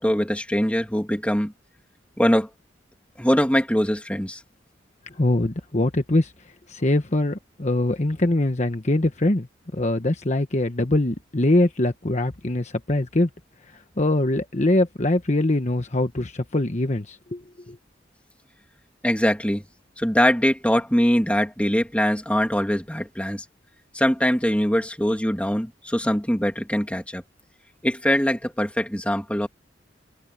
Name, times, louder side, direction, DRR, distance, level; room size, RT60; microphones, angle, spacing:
voice 1, 0.0-1.5 2.2-2.5 3.2-4.3 19.0-19.6 20.0-23.4 24.0-25.7 25.9-27.2 27.8-29.5, equal, 5° left, 2.6 m, -22 dB
voice 2, 5.2-6.3 6.7-9.5 9.7-13.3 14.0-17.4 17.7-17.8, left 1 dB, 40° left, 1.2 m, -22 dB
open air
head